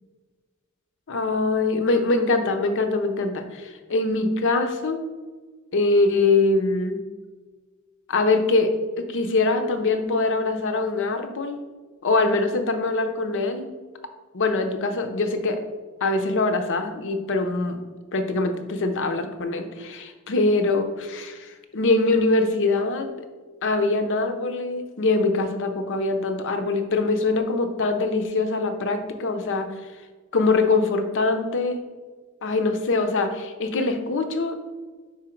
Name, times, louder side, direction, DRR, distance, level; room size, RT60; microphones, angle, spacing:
voice 1, 1.1-5.0 5.7-7.0 8.1-11.6 12.0-13.7 14.3-15.6 16.0-17.8 18.1-23.1 23.6-29.7 30.3-31.8 32.4-34.6, left 3 dB, 60° left, 7 dB, 0.6 m, -23 dB
4.9 x 4.5 x 4.4 m, 1.4 s
head